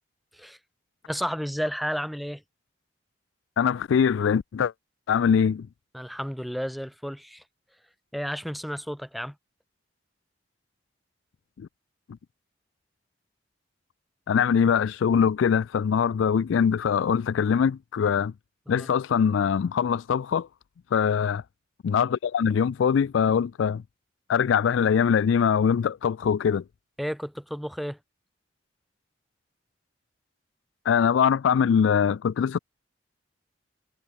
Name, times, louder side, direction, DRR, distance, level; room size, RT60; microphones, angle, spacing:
voice 1, 1.1-2.4 5.9-7.4 8.1-9.4 18.7-18.9 27.0-28.0, equal, ahead, 2.3 m, -32 dB
voice 2, 3.6-4.7 5.1-5.7 11.6-11.7 14.3-18.3 18.7-20.5 20.9-21.4 21.8-23.8 24.3-26.6 30.9-32.6, left 7 dB, 85° left, 0.3 m, -22 dB
head